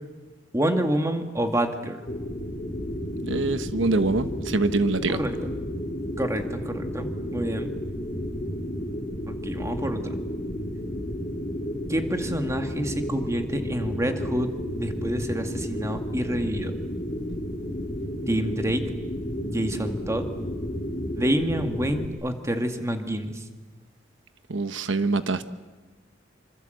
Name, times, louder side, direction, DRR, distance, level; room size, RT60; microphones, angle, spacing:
voice 1, 0.5-2.0 5.1-5.4 6.2-7.7 9.3-10.1 11.9-14.5 14.7-16.7 18.3-18.8 19.4-20.3 21.2-23.4, right 1 dB, 15° right, 5 dB, 2.1 m, -28 dB
sound 1, 2.1-22.1, equal, 40° left, 3.0 m, -32 dB
voice 2, 3.3-5.2 24.5-25.4, right 3 dB, 85° right, 11 dB, 1.1 m, -24 dB
27.0 x 25.5 x 8.0 m, 1.2 s
head